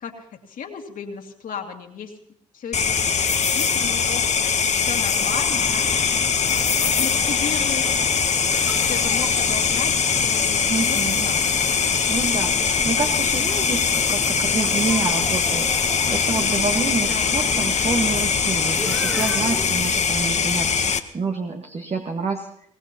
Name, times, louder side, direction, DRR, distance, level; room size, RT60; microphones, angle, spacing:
voice 1, 0.0-2.1 2.5-6.1 7.0-7.8 8.9-9.9 10.2-11.7 17.0-17.4, left 7 dB, 70° left, 2 dB, 2.2 m, -34 dB
sound 1, 2.7-21.0, left 6 dB, 50° left, 1.1 m, -21 dB
sound 2, 5.1-19.7, equal, ahead, 2.2 m, -37 dB
voice 2, 10.7-11.3 12.1-22.5, right 4 dB, 45° right, 2 dB, 1.5 m, -28 dB
23.0 x 18.0 x 2.9 m, 0.68 s
supercardioid pair, 50°, 15 cm